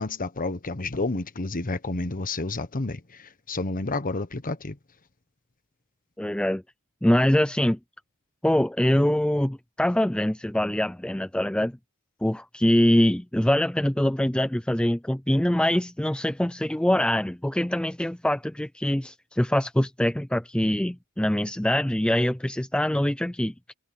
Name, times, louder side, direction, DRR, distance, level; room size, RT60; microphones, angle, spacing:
voice 1, 0.0-3.0 3.5-4.7, left 2 dB, 40° left, 1.2 m, -30 dB
voice 2, 6.2-6.6 7.0-7.8 8.4-11.7 12.2-23.5, left 1 dB, 5° left, 0.5 m, -24 dB
head